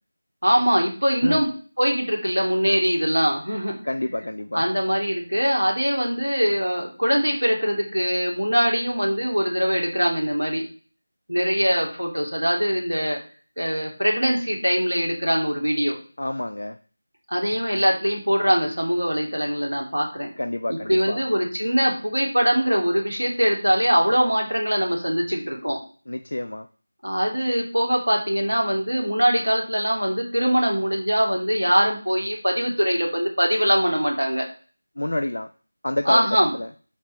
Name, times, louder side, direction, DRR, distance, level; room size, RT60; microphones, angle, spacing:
voice 1, 0.4-1.5 1.8-3.8 4.5-10.7 11.3-13.2 13.6-16.0 17.3-20.3 20.7-25.8 27.0-34.4 36.0-36.5, equal, 80° right, 1 dB, 2.9 m, -22 dB
voice 2, 3.8-4.7 16.2-16.8 20.4-21.2 26.1-26.7 35.0-35.5 35.8-36.3 36.5-36.7, left 1 dB, 55° left, 8 dB, 0.5 m, -28 dB
5.8 x 5.4 x 5.6 m, 0.39 s
figure-of-eight pair, 170°, 0 cm